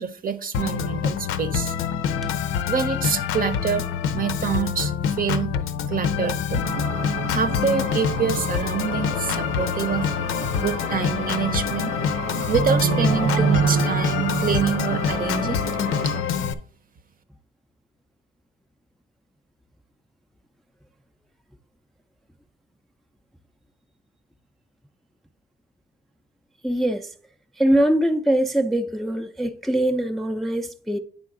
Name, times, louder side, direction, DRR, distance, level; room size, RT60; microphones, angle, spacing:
voice 1, 0.0-1.7 2.7-5.5 5.9-6.6 7.3-10.1 10.6-11.9 12.5-15.6, right 7 dB, 45° right, 0.7 m, -26 dB
Organ, 0.5-16.5, left 8 dB, 85° left, 0.6 m, -26 dB
sound 1, 6.6-16.2, right 5 dB, 85° right, 0.7 m, -28 dB
voice 2, 26.6-27.1 27.6-31.0, right 1 dB, ahead, 0.4 m, -22 dB
9.1 x 3.7 x 3.7 m
cardioid pair, 90°, 20 cm